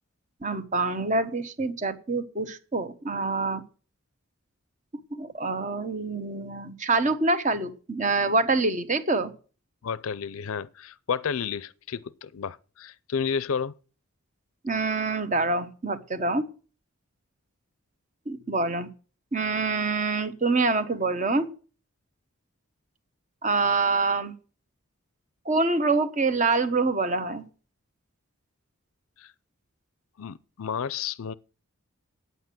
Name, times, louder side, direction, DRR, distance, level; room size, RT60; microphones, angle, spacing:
voice 1, 0.4-3.6 5.1-9.3 14.6-16.5 18.3-18.9 19.3-21.5 23.4-24.3 25.4-27.4, right 3 dB, 35° right, 1.1 m, -26 dB
voice 2, 9.8-13.7 29.2-29.3 30.2-31.3, left 6 dB, 75° left, 0.5 m, -31 dB
9.3 x 8.1 x 7.7 m
head